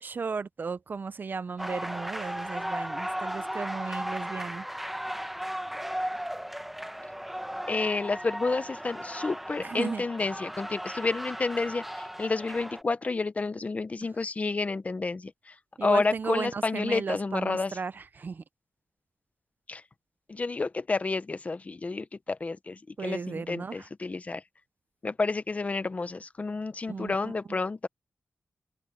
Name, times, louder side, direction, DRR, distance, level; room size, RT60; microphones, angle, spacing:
voice 1, 0.0-4.6 9.6-10.1 15.8-18.4 23.0-23.9 26.9-27.3, right 5 dB, 40° right, 0.4 m, -35 dB
sound 1, 1.6-12.8, equal, 5° right, 0.9 m, -36 dB
voice 2, 7.7-15.5 15.8-17.8 19.7-19.8 20.3-24.4 25.0-27.9, left 3 dB, 30° left, 0.6 m, -30 dB
wide cardioid pair, 165°, 5 cm